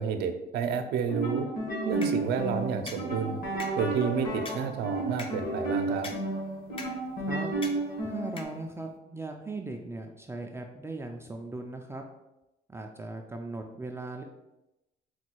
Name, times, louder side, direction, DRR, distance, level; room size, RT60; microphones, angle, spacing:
voice 1, 0.0-1.5 1.8-3.4 3.8-6.1, right 6 dB, 75° right, 7 dB, 0.5 m, -30 dB
sound 1, 1.0-8.4, right 2 dB, 55° left, 1.4 m, -32 dB
sound 2, 1.9-9.0, left 2 dB, 30° left, 0.6 m, -46 dB
voice 2, 8.0-12.0 12.7-14.2, right 2 dB, 15° right, 2 dB, 0.4 m, -38 dB
4.2 x 2.3 x 4.5 m, 0.93 s
cardioid pair, 110°, 17 cm